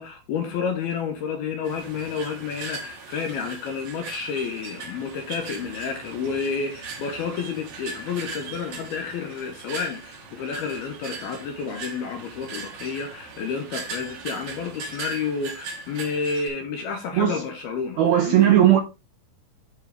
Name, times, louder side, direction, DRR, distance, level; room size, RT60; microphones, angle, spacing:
voice 1, 0.0-18.5, left 5 dB, 70° left, 2.5 m, -30 dB
sound 1, 1.6-16.5, right 4 dB, 55° right, 2.1 m, -39 dB
voice 2, 18.0-18.8, right 11 dB, 75° right, 2.4 m, -17 dB
12.5 x 4.4 x 3.4 m
omnidirectional pair, 5.6 m